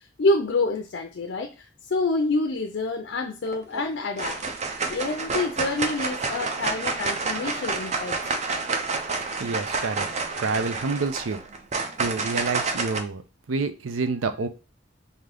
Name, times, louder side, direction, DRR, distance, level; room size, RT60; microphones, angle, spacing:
voice 1, 0.2-4.4 4.9-8.4, left 2 dB, 60° left, 0.4 m, -27 dB
sound 1, 3.5-3.8 4.2-13.0, right 4 dB, 35° right, 0.5 m, -29 dB
voice 2, 9.4-10.1 10.4-11.4 12.0-13.2 13.5-14.5, right 4 dB, 90° right, 0.5 m, -28 dB
3.7 x 2.8 x 3.4 m
head